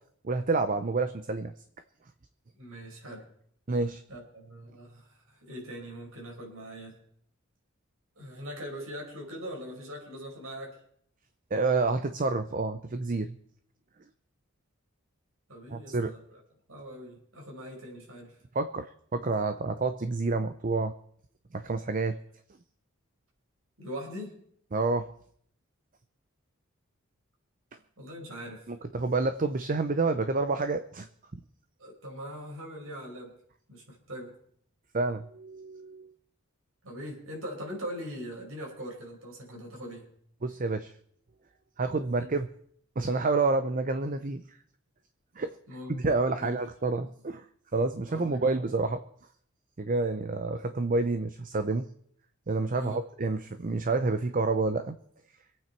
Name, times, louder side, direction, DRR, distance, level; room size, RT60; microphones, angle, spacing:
voice 1, 0.2-1.5 3.7-4.0 11.5-13.4 15.7-16.1 18.5-20.9 21.5-22.1 24.7-25.1 28.7-31.1 34.9-36.1 40.4-40.9 41.8-42.5 43.0-44.4 45.4-45.6 46.0-47.5 47.7-49.0 49.8-51.9 52.5-54.9, right 3 dB, 40° right, 10 dB, 0.6 m, -28 dB
voice 2, 2.6-3.2 4.1-7.0 8.2-10.8 15.5-16.4 16.7-18.4 23.8-24.3 28.0-28.7 31.8-33.3 33.7-34.3 36.8-40.1 42.2-42.3 45.7-46.0 46.3-46.6 48.1-48.6 52.8-53.0, equal, 75° right, 0 dB, 5.4 m, -41 dB
24.5 x 9.0 x 4.5 m, 0.64 s
head